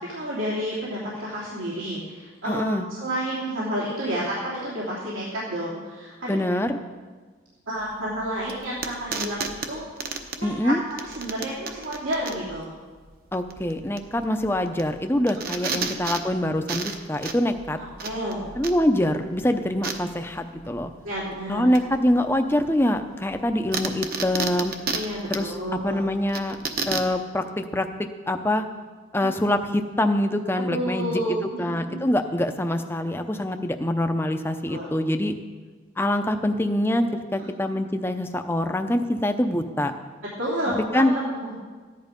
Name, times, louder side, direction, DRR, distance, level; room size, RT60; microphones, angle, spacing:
voice 1, 0.0-6.4 7.7-9.9 10.4-10.7 11.0-12.7 15.6-15.8 17.8-18.5 21.0-21.8 24.9-26.0 30.7-32.0 34.7-34.9 40.4-41.5, right 1 dB, 90° right, -7 dB, 3.0 m, -30 dB
voice 2, 2.4-2.9 6.3-6.8 10.4-10.8 13.3-17.8 18.6-20.9 21.5-24.7 25.3-25.6 25.8-26.6 26.9-28.7 29.1-31.2 31.6-35.3 36.0-37.1 37.3-39.9 40.7-41.1, left 1 dB, 10° left, 6 dB, 0.6 m, -24 dB
sound 1, 7.8-27.2, right 4 dB, 45° right, 1.0 m, -34 dB
14.5 x 10.5 x 5.2 m, 1.4 s
head